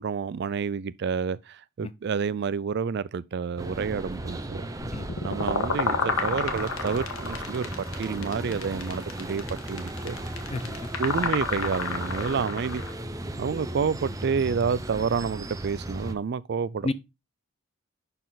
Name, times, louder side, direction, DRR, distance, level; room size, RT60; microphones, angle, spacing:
voice 1, 0.0-4.7 5.2-10.2 11.0-12.8 13.4-16.9, right 6 dB, 50° right, 0.4 m, -29 dB
sound 1, 3.6-16.1, right 1 dB, 15° right, 0.7 m, -36 dB
sound 2, 4.8-12.9, left 4 dB, 80° left, 1.4 m, -30 dB
voice 2, 10.5-10.9 16.8-16.9, left 2 dB, 30° left, 0.5 m, -31 dB
11.0 x 4.1 x 4.0 m
head